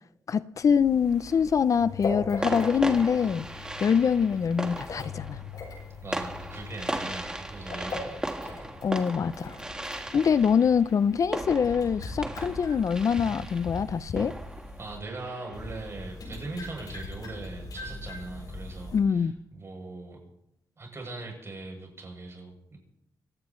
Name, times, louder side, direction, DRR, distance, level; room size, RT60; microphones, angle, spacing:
voice 1, 0.3-3.4 3.8-5.4 8.8-9.6 10.1-14.3 18.9-19.3, left 6 dB, 50° left, 0.5 m, -24 dB
sound 1, 0.6-15.0 15.5-19.0, left 3 dB, 70° left, 7.0 m, -40 dB
sound 2, 0.9-1.5 2.4-15.8, right 1 dB, 10° right, 1.6 m, -37 dB
voice 2, 6.0-8.7 14.8-20.2 20.8-22.8, right 2 dB, 40° right, 7.8 m, -40 dB
25.5 x 17.5 x 3.2 m
wide cardioid pair, 115°, 7 cm